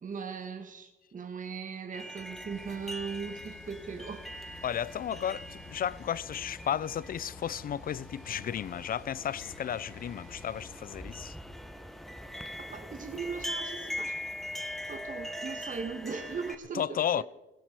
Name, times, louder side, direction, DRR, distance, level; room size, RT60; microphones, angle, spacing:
voice 1, 0.0-4.3 12.6-14.1 14.9-17.2, right 5 dB, 40° right, 1.9 m, -39 dB
sound 1, 1.9-16.5, equal, ahead, 1.5 m, -42 dB
Car, 2.5-10.8, left 5 dB, 75° left, 2.4 m, -52 dB
voice 2, 4.6-11.4 16.7-17.2, left 9 dB, 45° left, 0.5 m, -33 dB
19.5 x 15.5 x 4.7 m
cardioid pair, 90°, 20 cm